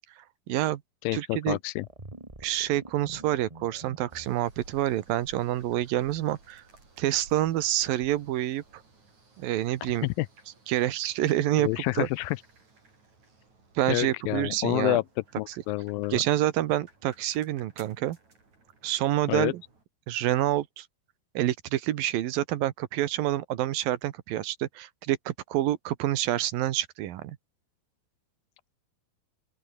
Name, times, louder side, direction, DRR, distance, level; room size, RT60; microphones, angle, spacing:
voice 1, 0.5-0.8 1.1-1.6 2.4-6.6 7.0-8.6 9.4-10.1 10.7-12.1 13.8-15.0 16.1-18.2 18.8-19.6 20.1-20.9 21.3-27.4, right 13 dB, 80° right, 2.9 m, -27 dB
voice 2, 1.0-1.9 10.0-10.3 11.6-12.4 13.9-15.0 15.4-16.2 19.3-19.5, left 20 dB, 80° left, 2.3 m, -28 dB
sound 1, 1.8-4.3, right 2 dB, 10° right, 2.1 m, -46 dB
sound 2, 4.1-19.8, right 3 dB, 50° right, 8.3 m, -57 dB
open air
omnidirectional pair, 4.2 m